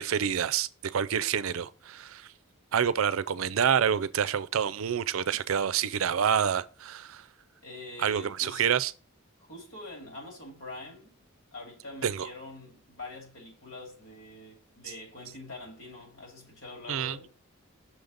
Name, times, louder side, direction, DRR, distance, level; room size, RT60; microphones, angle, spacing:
voice 1, 0.0-2.3 2.7-7.2 8.0-8.9 12.0-12.3 16.9-17.2, right 8 dB, 70° right, 0.4 m, -27 dB
voice 2, 7.6-8.6 9.4-11.2 11.5-17.3, left 2 dB, 65° left, 2.7 m, -45 dB
6.3 x 3.9 x 5.1 m
head